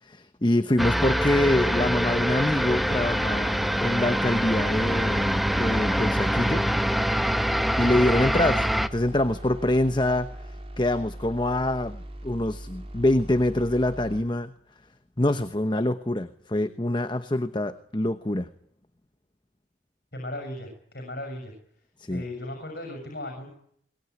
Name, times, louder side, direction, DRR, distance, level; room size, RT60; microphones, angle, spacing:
voice 1, 0.0-6.7 7.8-14.5 15.2-18.5 22.0-22.2, left 1 dB, 25° left, 10 dB, 0.9 m, -25 dB
sound 1, 0.8-8.9, equal, ahead, 1.1 m, -25 dB
sound 2, 2.2-14.2, right 1 dB, 30° right, 5.1 m, -40 dB
voice 2, 20.1-21.5 22.1-23.5, left 1 dB, 60° left, 4 dB, 6.8 m, -36 dB
23.0 x 21.0 x 9.5 m, 0.67 s
head